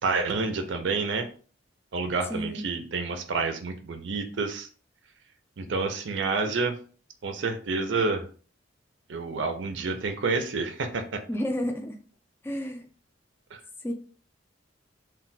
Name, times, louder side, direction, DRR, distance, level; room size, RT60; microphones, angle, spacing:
voice 1, 0.0-1.3 1.9-4.7 5.6-6.8 7.2-8.3 9.1-11.2 13.5-13.6, right 4 dB, 65° right, 6 dB, 0.5 m, -29 dB
voice 2, 2.3-2.7 11.3-12.0 12.4-12.9 13.8-13.9, equal, 10° left, 2 dB, 0.4 m, -31 dB
2.2 x 2.2 x 3.9 m, 0.40 s
head